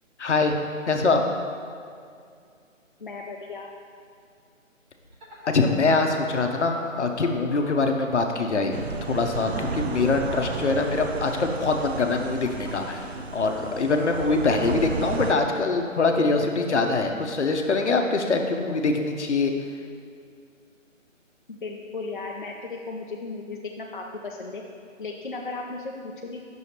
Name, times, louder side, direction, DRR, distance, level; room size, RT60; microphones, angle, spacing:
voice 1, 0.2-0.6 0.9-1.2 5.5-8.8 9.1-19.5, left 3 dB, 60° left, 4 dB, 0.8 m, -24 dB
voice 2, 3.0-3.7 21.5-24.6 25.0-26.4, left 3 dB, 40° left, -1 dB, 0.4 m, -35 dB
sound 1, 5.0-8.5 8.9-14.2, equal, 35° right, 1.4 m, -44 dB
sound 2, 8.7-15.3, right 4 dB, 55° right, 0.4 m, -33 dB
9.0 x 6.3 x 2.9 m, 2.3 s
figure-of-eight pair, 155°, 39 cm